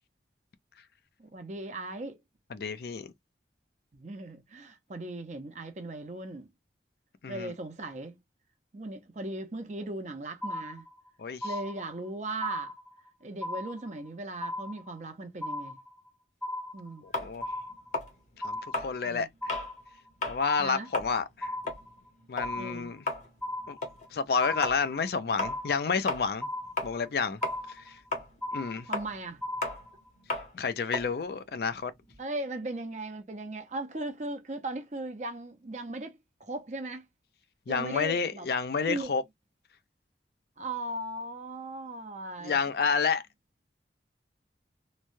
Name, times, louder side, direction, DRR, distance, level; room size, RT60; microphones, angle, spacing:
voice 1, 1.2-2.2 3.9-6.5 7.3-8.2 8.7-10.9 11.4-12.7 13.2-15.8 16.7-17.1 19.0-19.3 20.6-20.9 22.5-22.9 28.9-29.4 32.2-37.1 37.7-38.5 38.8-39.1 40.6-42.6, right 2 dB, 40° right, 0.6 m, -38 dB
voice 2, 2.5-3.1 7.2-7.5 11.2-11.5 17.0-17.5 18.4-19.5 20.3-21.5 22.3-23.0 23.7-23.8 24.1-26.5 26.8-27.4 27.7-28.0 28.5-28.9 30.5-31.9 37.7-39.2 42.4-43.2, left 5 dB, 60° left, 0.4 m, -30 dB
sound 1, 10.4-11.1 11.4-12.1 12.4-13.1 13.4-14.1 14.4-15.1 15.4-16.1 16.4-17.1 17.4-18.1 18.4-19.1 19.4-20.1 20.4-21.1 21.4-22.1 22.4-23.1 23.4-24.1 24.4-25.1 25.4-26.1 26.4-27.1 27.4-28.1 28.4-29.1 29.4-30.1, left 1 dB, 5° left, 0.7 m, -37 dB
sound 2, 17.1-19.7 20.1-20.4 20.8-27.2 27.4-32.2, left 2 dB, 40° left, 0.9 m, -36 dB
3.1 x 2.2 x 2.5 m
head